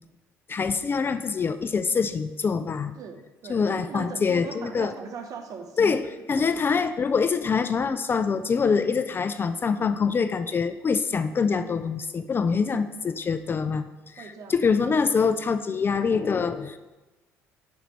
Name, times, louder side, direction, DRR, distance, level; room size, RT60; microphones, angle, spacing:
voice 1, 0.5-2.9 3.5-4.9 5.8-16.8, left 5 dB, 30° left, 11 dB, 0.3 m, -25 dB
voice 2, 2.9-5.9 6.3-6.5 12.6-12.9 14.2-14.6, right 5 dB, 50° right, 6 dB, 0.8 m, -39 dB
6.2 x 3.9 x 4.3 m, 1.1 s
figure-of-eight pair, 55°, 8 cm